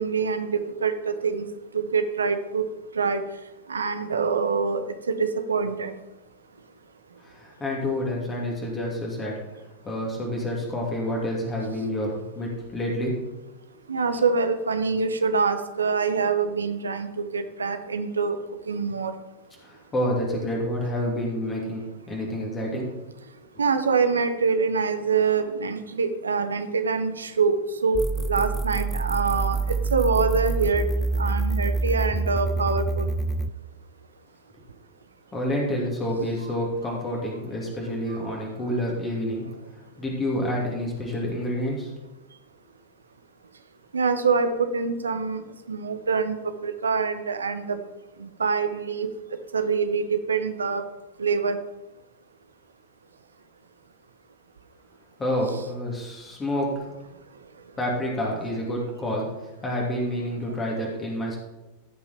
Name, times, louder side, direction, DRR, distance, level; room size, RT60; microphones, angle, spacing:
voice 1, 0.0-1.5 1.9-2.6 3.0-3.2 3.7-4.8 5.1-5.9 13.9-18.4 18.7-19.1 23.6-28.0 28.3-29.6 29.9-30.8 31.2-33.1 43.9-45.4 45.7-46.4 46.6-47.8 48.4-49.1 49.5-50.8 51.2-51.6, right 5 dB, 75° right, 9 dB, 0.9 m, -25 dB
voice 2, 7.2-9.3 9.8-13.1 19.6-22.9 35.3-39.5 40.0-41.9 55.2-56.9 57.8-59.3 59.6-61.4, left 1 dB, 20° left, -2 dB, 2.8 m, -28 dB
sound 1, 27.9-33.5, right 3 dB, 5° right, 0.4 m, -26 dB
15.0 x 5.8 x 4.3 m, 1.1 s
figure-of-eight pair, 90°, 0 cm